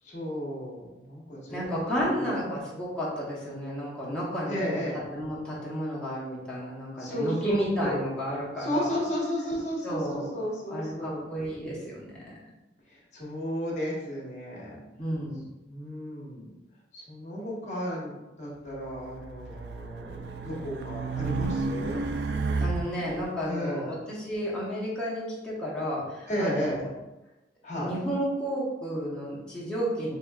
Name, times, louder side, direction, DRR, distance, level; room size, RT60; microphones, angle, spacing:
voice 1, 0.0-1.7 2.0-2.3 4.5-5.0 7.0-8.0 8.6-11.2 13.1-14.8 15.7-16.5 16.9-22.0 23.4-23.9 26.3-26.8 27.6-27.9, equal, 40° left, -4 dB, 1.2 m, -33 dB
voice 2, 1.5-9.0 9.8-10.3 10.7-12.3 15.0-15.4 22.6-26.9 27.8-30.2, equal, 5° left, -7 dB, 0.9 m, -32 dB
Race car auto racing, 18.9-23.2, right 3 dB, 65° right, 0.3 m, -32 dB
5.1 x 2.7 x 2.3 m, 1.0 s
head